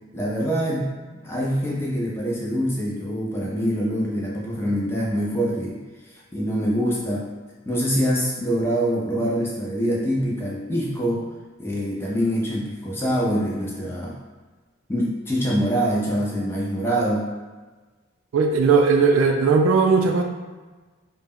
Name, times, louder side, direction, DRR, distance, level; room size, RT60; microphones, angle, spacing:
voice 1, 0.1-0.9 1.2-5.8 6.3-7.3 7.7-11.2 11.6-14.2 14.9-17.2, equal, 10° left, -5 dB, 0.4 m, -24 dB
voice 2, 18.3-20.2, right 4 dB, 70° right, 3 dB, 0.3 m, -18 dB
2.1 x 2.0 x 3.5 m, 1.3 s
head